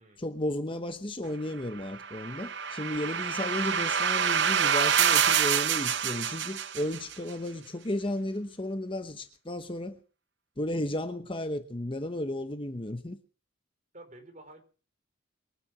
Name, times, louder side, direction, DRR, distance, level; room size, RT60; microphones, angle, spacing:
voice 1, 0.2-10.0 10.6-13.2, left 1 dB, 25° left, 0.9 m, -34 dB
sound 1, 1.9-7.1, right 8 dB, 55° right, 0.7 m, -27 dB
voice 2, 3.1-3.5 13.9-14.6, right 2 dB, 35° right, 4.5 m, -51 dB
22.5 x 9.5 x 6.1 m
head